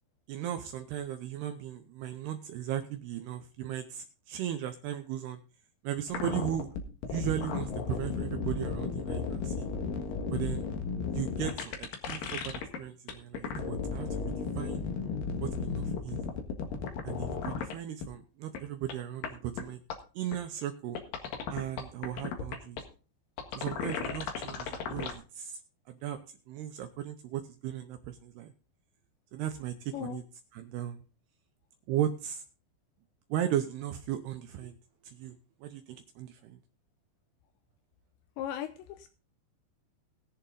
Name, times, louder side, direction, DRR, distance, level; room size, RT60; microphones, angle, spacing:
voice 1, 0.3-5.4 5.8-6.7 7.1-9.7 10.3-10.7 11.1-14.8 15.4-16.2 17.0-19.8 20.2-21.0 21.5-22.8 23.5-25.6 25.9-26.2 26.5-28.5 29.3-30.2 30.5-31.0 31.9-32.4 33.3-34.7 35.0-35.3 35.6-36.6, right 11 dB, 75° right, 8 dB, 2.5 m, -36 dB
sound 1, 6.1-12.8 13.1-17.7 18.0-18.1 18.5-18.6 18.9-19.0 19.2-19.3 19.6-19.7 19.9-20.0 20.3-20.4 21.0-22.8 23.4-25.1, left 5 dB, 60° left, 2.9 m, -34 dB
voice 2, 38.4-39.1, left 10 dB, 80° left, 9 dB, 2.9 m, -37 dB
20.5 x 7.1 x 3.9 m, 0.36 s
omnidirectional pair, 5.3 m